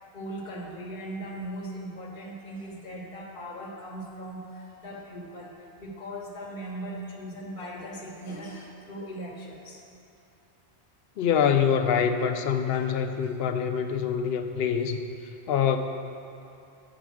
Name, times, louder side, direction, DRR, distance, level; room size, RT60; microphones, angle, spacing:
voice 1, 0.1-9.8 12.7-13.0, right 1 dB, 50° left, -2 dB, 1.3 m, -39 dB
voice 2, 11.2-15.0 15.5-15.8, left 7 dB, 70° left, 7 dB, 0.8 m, -25 dB
8.3 x 5.1 x 6.2 m, 2.7 s
omnidirectional pair, 1.1 m